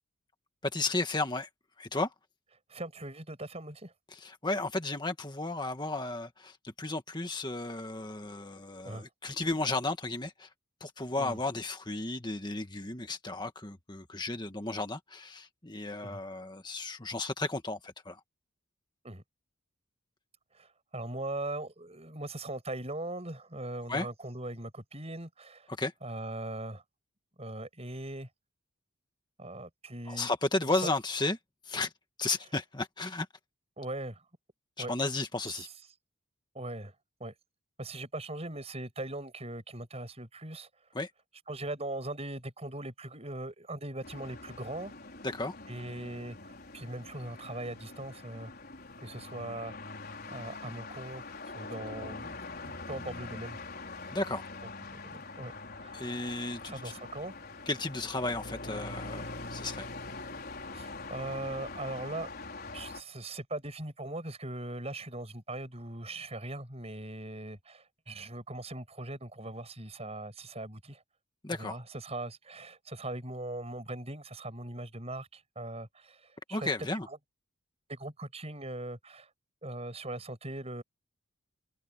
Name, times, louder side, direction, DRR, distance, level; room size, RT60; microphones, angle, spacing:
voice 1, 0.6-1.5 1.8-2.1 4.1-10.5 10.8-18.2 23.9-24.1 25.8-25.9 30.1-31.4 31.6-31.9 32.2-33.3 34.8-35.7 40.9-41.1 45.2-45.5 54.1-54.5 55.9-56.8 57.7-59.9 71.4-71.8 76.5-77.1, left 2 dB, 20° left, 1.6 m, -34 dB
voice 2, 2.7-3.9 8.8-9.0 11.2-11.4 16.0-16.2 19.0-19.2 20.5-25.7 26.0-26.8 27.4-28.3 29.4-30.3 30.7-30.9 33.8-34.2 34.8-34.9 35.5-35.6 36.5-36.9 37.2-37.3 37.8-40.7 41.5-44.9 45.7-48.5 49.0-49.7 50.3-52.4 52.6-53.6 54.9-56.0 56.7-57.3 60.7-62.3 62.7-71.0 71.5-76.7 77.0-77.2 77.9-79.3 79.6-80.8, right 2 dB, 30° right, 7.0 m, -40 dB
sound 1, 44.0-63.0, left 3 dB, 45° left, 4.8 m, -44 dB
head